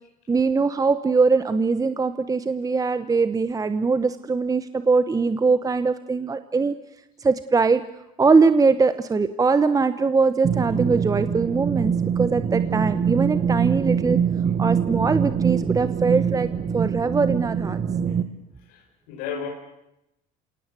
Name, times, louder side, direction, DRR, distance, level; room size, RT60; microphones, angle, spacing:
voice 1, 0.3-6.7 7.2-7.8 8.2-14.2 14.6-16.5 16.7-17.8, right 4 dB, 20° right, 11 dB, 1.0 m, -21 dB
sound 1, 10.4-18.2, right 7 dB, 40° right, 1.7 m, -24 dB
voice 2, 18.7-19.5, left 7 dB, 85° left, -1 dB, 5.3 m, -34 dB
27.5 x 18.0 x 8.3 m, 0.85 s
supercardioid pair, 105°, 18 cm